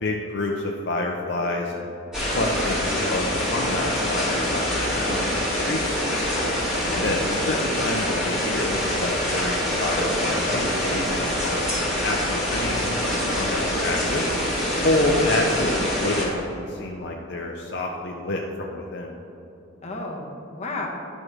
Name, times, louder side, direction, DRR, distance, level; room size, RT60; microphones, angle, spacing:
voice 1, 0.0-1.9 2.3-6.3 6.9-7.2 7.4-11.6 12.0-14.3 14.8-19.1, left 2 dB, 55° left, 0 dB, 0.6 m, -28 dB
sound 1, 2.1-16.3, equal, 5° right, 1.9 m, -25 dB
voice 2, 6.8-7.4 15.1-15.3 19.8-20.9, left 2 dB, 35° left, 0 dB, 1.0 m, -33 dB
11.0 x 6.1 x 3.2 m, 2.9 s
head